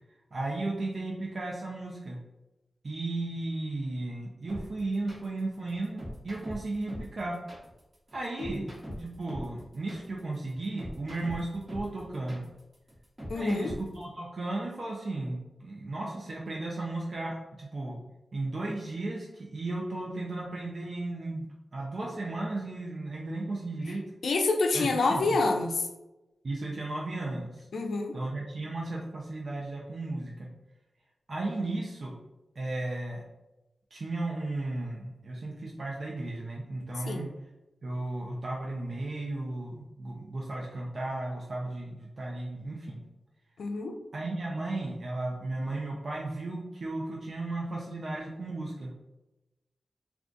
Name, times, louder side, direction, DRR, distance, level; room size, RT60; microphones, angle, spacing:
voice 1, 0.3-2.2 2.8-7.4 8.1-8.7 9.0-12.4 13.3-18.0 18.3-21.5 21.7-24.0 24.7-24.9 25.3-25.4 26.4-27.7 28.1-30.5 31.3-32.2 32.6-33.2 33.9-37.3 37.8-43.0 44.1-48.9, right 2 dB, 55° right, -3 dB, 0.5 m, -35 dB
sound 1, 4.5-14.0, equal, 20° right, 1.1 m, -42 dB
voice 2, 13.3-13.7 24.2-25.9 27.7-28.2 37.1-37.3 43.6-44.0, left 3 dB, 85° left, 4 dB, 0.4 m, -28 dB
2.4 x 2.3 x 3.8 m, 1.0 s
wide cardioid pair, 100°, 0 cm